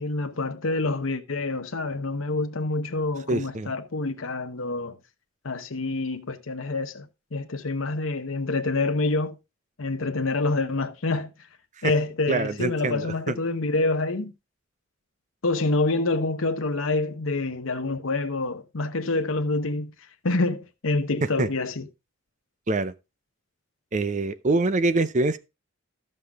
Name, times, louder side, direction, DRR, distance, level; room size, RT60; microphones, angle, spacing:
voice 1, 0.0-5.0 5.4-7.1 7.3-9.4 9.8-11.3 11.8-14.3 15.4-19.9 20.2-21.9, left 3 dB, 75° left, 1.0 m, -27 dB
voice 2, 3.3-3.7 11.8-11.9 12.3-13.4 21.4-21.5 22.7-22.9 23.9-25.4, right 3 dB, 35° right, 0.6 m, -25 dB
13.0 x 6.7 x 3.5 m
head